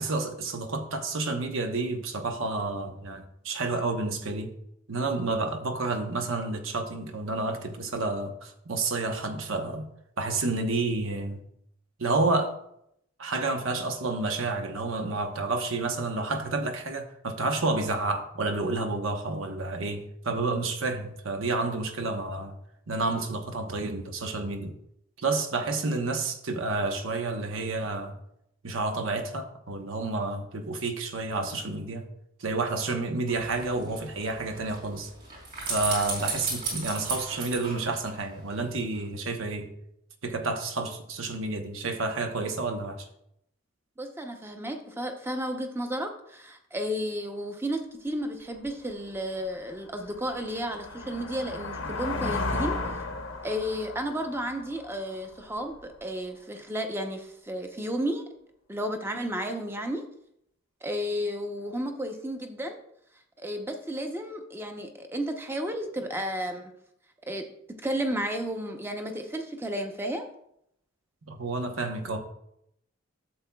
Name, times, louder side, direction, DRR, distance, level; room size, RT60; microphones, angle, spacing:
voice 1, 0.0-4.5 4.9-9.9 10.2-11.4 12.0-12.6 13.2-22.6 22.9-24.7 25.2-28.2 28.6-32.1 32.4-35.1 35.7-39.7 40.2-43.1 71.3-72.2, right 3 dB, 80° right, 0.9 m, -30 dB
sound 1, 33.3-38.6 38.9-39.0, right 4 dB, 45° right, 3.6 m, -35 dB
voice 2, 44.0-52.8 53.4-58.2 58.7-60.0 60.8-62.8 63.4-66.7 67.3-70.3, equal, 10° right, 0.7 m, -32 dB
sound 2, 48.6-48.7 49.2-55.8, left 2 dB, 80° left, 0.9 m, -35 dB
12.0 x 7.3 x 2.3 m
head